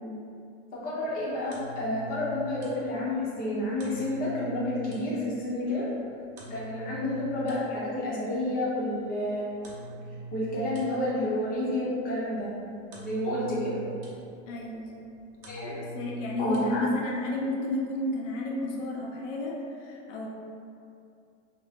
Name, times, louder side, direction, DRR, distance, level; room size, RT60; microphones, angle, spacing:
voice 1, 0.7-5.9 6.5-9.5 10.3-12.5 13.0-13.8 15.5-15.8 16.4-16.8, left 1 dB, 25° left, -7 dB, 0.7 m, -30 dB
sound 1, 1.0-16.6, right 2 dB, 50° right, 0.8 m, -45 dB
voice 2, 14.5-14.9 15.9-20.3, left 2 dB, 80° left, -2 dB, 0.6 m, -32 dB
2.5 x 2.1 x 3.3 m, 2.5 s
supercardioid pair, 130°, 37 cm